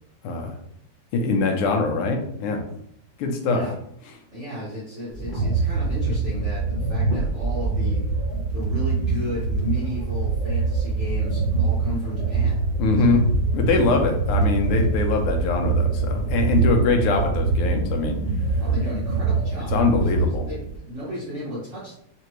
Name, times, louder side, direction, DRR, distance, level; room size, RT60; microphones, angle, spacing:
voice 1, 1.1-2.7 3.2-3.6 12.8-13.2 13.5-18.2 19.7-20.5, left 4 dB, 85° left, 3 dB, 1.6 m, -22 dB
voice 2, 4.3-8.0 8.5-12.6 12.9-13.2 18.6-22.0, left 1 dB, 40° right, -9 dB, 1.1 m, -34 dB
sound 1, 5.1-20.8, right 4 dB, 35° left, 0.8 m, -24 dB
3.9 x 3.4 x 3.0 m, 0.73 s
omnidirectional pair, 2.4 m